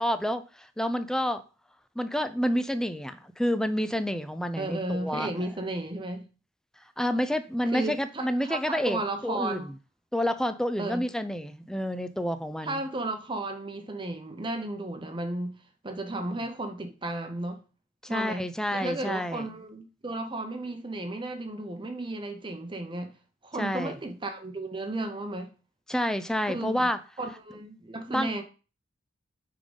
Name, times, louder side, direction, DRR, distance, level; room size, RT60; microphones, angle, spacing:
voice 1, 0.0-1.4 2.0-5.5 6.8-9.7 10.1-12.8 16.1-16.4 18.0-19.5 23.6-24.0 25.9-27.0 28.1-28.3, equal, 5° left, 0.5 m, -29 dB
voice 2, 4.6-6.3 7.7-9.7 10.8-11.0 12.6-15.6 15.8-17.6 18.1-18.5 18.7-23.1 23.4-25.5 26.5-26.9 27.2-28.4, right 2 dB, 25° right, 0.8 m, -34 dB
8.6 x 3.8 x 5.2 m
head